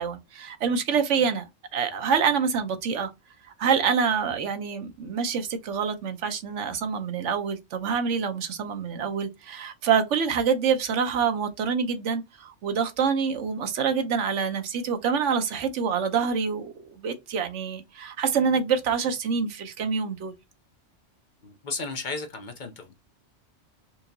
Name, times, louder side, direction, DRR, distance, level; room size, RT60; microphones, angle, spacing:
voice 1, 0.0-3.1 3.6-20.3, right 6 dB, 80° right, 1.1 m, -26 dB
voice 2, 21.4-23.0, left 4 dB, 50° left, 0.7 m, -34 dB
4.3 x 2.8 x 2.6 m
omnidirectional pair, 1.2 m